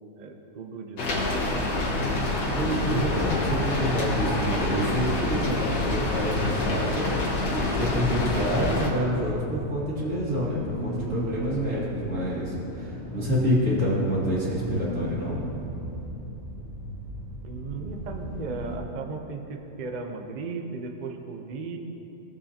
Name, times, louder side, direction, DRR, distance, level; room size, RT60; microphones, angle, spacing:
voice 1, 0.2-1.6 17.4-21.8, right 4 dB, 70° right, 3 dB, 0.4 m, -36 dB
Rain, 1.0-8.9, left 2 dB, 75° left, 1.8 m, -27 dB
voice 2, 2.5-7.1 7.5-15.4, equal, 50° right, -6 dB, 2.4 m, -27 dB
sound 1, 8.1-18.8, equal, 25° left, 1.5 m, -37 dB
17.0 x 7.3 x 2.8 m, 2.9 s
omnidirectional pair, 1.8 m